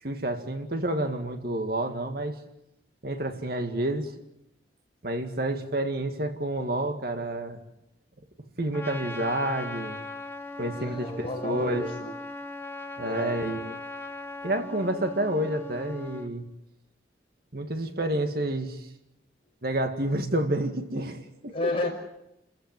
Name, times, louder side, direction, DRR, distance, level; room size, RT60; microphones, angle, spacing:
voice 1, 0.0-2.4 3.0-4.2 5.0-7.6 8.6-10.0 10.6-11.8 13.0-13.8 14.4-16.4 17.5-18.9 19.6-21.5, right 1 dB, 55° right, 6 dB, 2.1 m, -29 dB
Trumpet, 8.7-16.3, left 2 dB, 15° left, 1.4 m, -39 dB
voice 2, 10.7-12.1 13.0-13.4 21.5-21.9, left 2 dB, 30° left, 1 dB, 6.3 m, -32 dB
30.0 x 15.0 x 9.5 m, 0.86 s
head